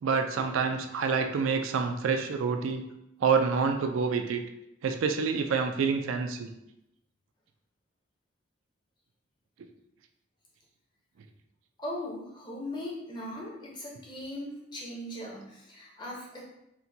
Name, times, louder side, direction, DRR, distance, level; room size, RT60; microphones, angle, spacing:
voice 1, 0.0-2.8 3.2-4.4 4.8-6.5, right 5 dB, 90° right, 5 dB, 0.4 m, -27 dB
voice 2, 11.8-16.4, left 1 dB, 20° left, -4 dB, 0.7 m, -39 dB
4.2 x 2.2 x 2.7 m, 0.84 s
head